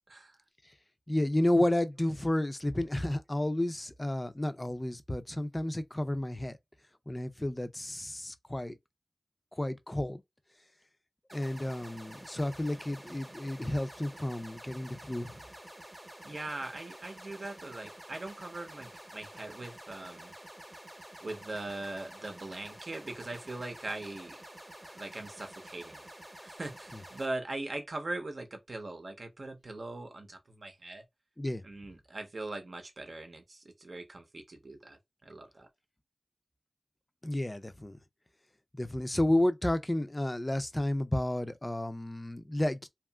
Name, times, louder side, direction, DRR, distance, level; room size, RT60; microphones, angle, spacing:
voice 1, 0.1-0.4 16.2-20.3 21.2-24.4 24.9-26.0 26.4-31.0 31.6-35.7, right 2 dB, 60° right, 0.7 m, -41 dB
voice 2, 1.1-6.6 7.1-8.8 9.6-10.2 11.3-15.4 31.4-31.6 37.2-38.0 38.8-42.9, left 1 dB, 20° left, 0.4 m, -31 dB
sound 1, 11.3-27.3, right 1 dB, 25° right, 0.8 m, -49 dB
2.8 x 2.4 x 2.2 m
wide cardioid pair, 65°, 0 cm